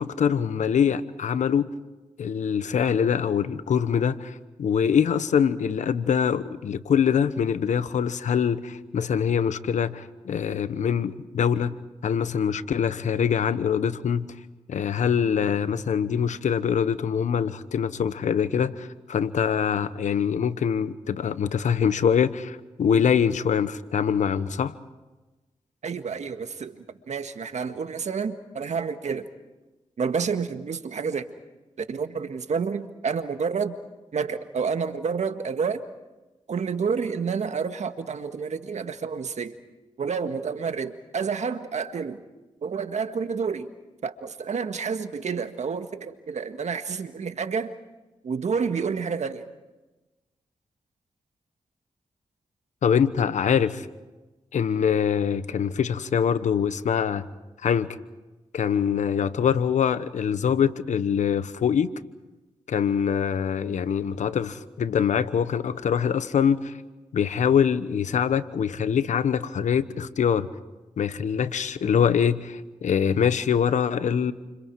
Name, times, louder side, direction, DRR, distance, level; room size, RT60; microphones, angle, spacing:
voice 1, 0.0-1.7 2.2-11.8 12.0-14.3 14.7-24.7 52.8-53.9 54.5-57.2 57.6-58.0 58.5-61.9 62.7-66.7 67.1-70.5 71.0-74.3, left 7 dB, 80° left, 14 dB, 1.1 m, -24 dB
voice 2, 25.8-29.3 30.0-31.3 31.8-33.7 34.1-35.8 36.5-39.5 40.0-42.2 42.6-43.7 44.0-47.7 48.2-49.5, right 5 dB, 70° right, 8 dB, 1.7 m, -29 dB
30.0 x 27.5 x 4.8 m, 1.1 s
supercardioid pair, 40°, 12 cm